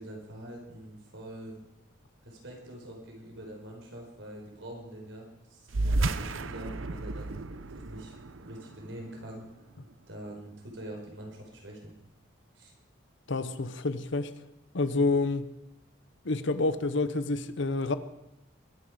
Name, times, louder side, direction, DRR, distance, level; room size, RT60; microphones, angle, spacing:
voice 1, 0.0-1.6 2.2-7.3 7.9-9.4 10.1-11.9 12.5-12.7, right 1 dB, 70° right, 1 dB, 4.6 m, -44 dB
sound 1, 5.7-10.6, right 2 dB, 85° right, 0.7 m, -33 dB
voice 2, 13.3-14.3 14.7-15.5 16.2-17.9, left 3 dB, 65° left, 13 dB, 0.8 m, -28 dB
22.0 x 10.5 x 4.9 m, 0.89 s
head